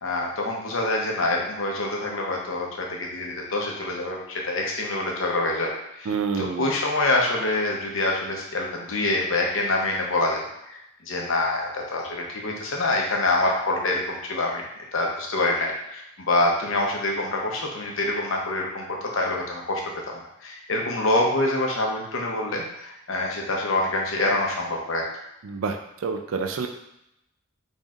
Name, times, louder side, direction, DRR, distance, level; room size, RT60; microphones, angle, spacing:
voice 1, 0.0-10.8 11.0-14.6 14.9-19.8 20.4-25.0, left 2 dB, 65° left, -1 dB, 0.8 m, -26 dB
voice 2, 6.1-6.7 25.4-26.7, right 5 dB, 70° right, 5 dB, 0.4 m, -28 dB
4.2 x 3.4 x 2.4 m, 0.83 s
head